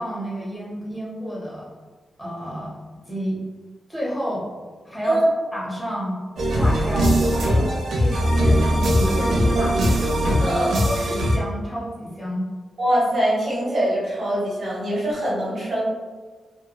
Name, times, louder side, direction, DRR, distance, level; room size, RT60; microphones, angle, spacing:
voice 1, 0.0-1.7 2.2-2.8 3.1-3.4 3.9-4.5 4.8-5.2 5.5-6.2 6.5-9.8 10.2-10.4 10.8-12.4, equal, 5° left, -6 dB, 0.7 m, -30 dB
sound 1, 6.4-11.4, equal, 85° right, 0.5 m, -20 dB
voice 2, 10.4-10.7 12.8-15.8, right 1 dB, 45° right, -8 dB, 1.2 m, -22 dB
2.8 x 2.2 x 2.2 m, 1.4 s
wide cardioid pair, 170°, 0 cm